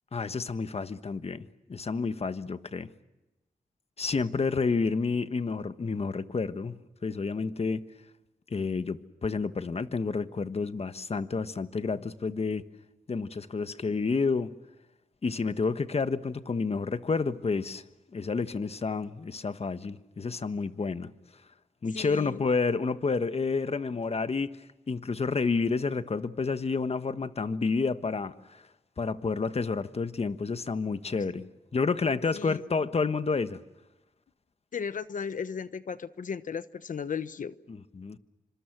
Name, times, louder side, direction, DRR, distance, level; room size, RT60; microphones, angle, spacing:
voice 1, 0.1-2.9 4.0-7.9 8.5-12.6 13.1-14.5 15.2-17.8 18.1-21.1 21.8-24.6 24.9-28.6 29.0-31.4 31.7-33.6 37.7-38.2, left 4 dB, 50° left, 11 dB, 1.3 m, -30 dB
voice 2, 21.9-22.4 31.3-31.4 32.3-32.6 34.7-37.5, left 6 dB, 70° left, 13 dB, 1.1 m, -35 dB
27.5 x 26.0 x 6.1 m, 1.0 s
cardioid pair, 60°, 14 cm